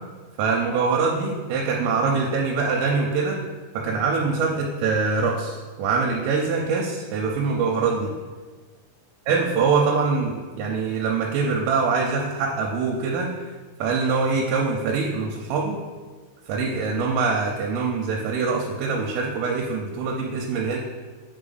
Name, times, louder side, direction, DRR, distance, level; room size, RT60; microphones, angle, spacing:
voice 1, 0.4-3.4 3.7-8.1 9.3-13.3 13.8-15.8 16.5-20.8, right 4 dB, 85° right, -1 dB, 3.2 m, -24 dB
8.5 x 3.7 x 4.0 m, 1.4 s
omnidirectional pair, 5.8 m